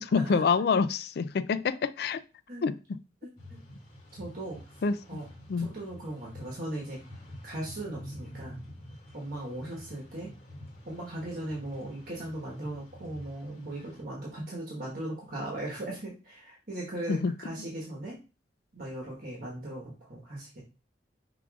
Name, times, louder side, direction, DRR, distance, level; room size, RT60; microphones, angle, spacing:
voice 1, 0.0-2.2 2.6-3.0 4.8-5.2 5.5-5.7 17.1-17.3, left 5 dB, 60° left, 0.3 m, -27 dB
voice 2, 3.2-3.6 4.2-4.6 5.1-5.3 5.6-7.0 7.4-8.6 9.1-10.3 10.8-18.2 18.7-20.6, right 1 dB, 55° right, 1.4 m, -38 dB
sound 1, 3.4-14.0, left 1 dB, 40° left, 2.3 m, -48 dB
5.8 x 3.7 x 2.4 m
head